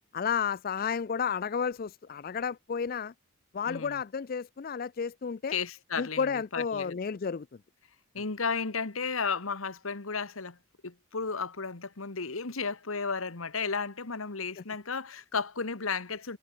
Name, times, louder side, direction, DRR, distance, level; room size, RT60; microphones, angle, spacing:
voice 1, 0.1-3.1 3.5-5.6 6.0-7.5 14.6-14.7, left 6 dB, 45° left, 0.4 m, -32 dB
voice 2, 3.7-4.0 5.5-7.0 8.1-10.6 10.8-16.4, left 5 dB, 80° left, 1.6 m, -33 dB
head